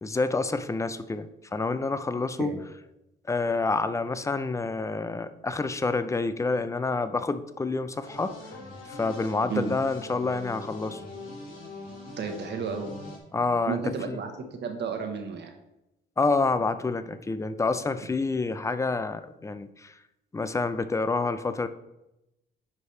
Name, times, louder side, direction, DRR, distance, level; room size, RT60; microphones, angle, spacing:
voice 1, 0.0-2.5 3.3-8.4 8.9-11.0 13.3-14.2 16.2-20.0 20.3-21.7, left 3 dB, 15° left, 12 dB, 0.5 m, -28 dB
sound 1, 8.0-13.2, left 2 dB, 85° left, 2.9 m, -42 dB
voice 2, 12.2-12.9 13.7-14.3 14.6-15.5, right 6 dB, 60° right, 4 dB, 1.1 m, -32 dB
9.9 x 4.8 x 3.2 m, 0.92 s
cardioid pair, 90°, 20 cm